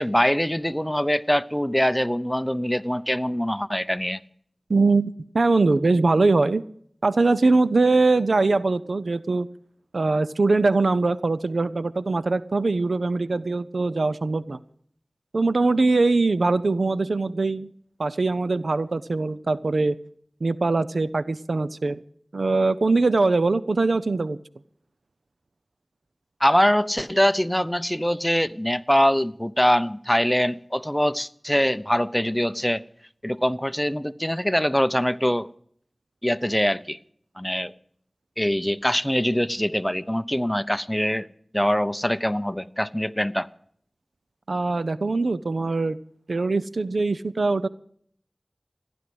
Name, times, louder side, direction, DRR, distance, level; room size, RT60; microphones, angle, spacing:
voice 1, 0.0-4.2 26.4-32.8 33.2-35.5 36.2-37.0 37.4-37.7 38.4-41.3 41.5-43.5, equal, 10° left, 0.8 m, -23 dB
voice 2, 4.7-6.6 7.0-9.5 9.9-14.6 15.3-17.7 18.0-20.0 20.4-22.0 22.3-24.4 44.5-46.0 46.3-47.7, right 3 dB, 85° right, 0.6 m, -22 dB
15.0 x 11.0 x 7.8 m
wide cardioid pair, 45°, 0 cm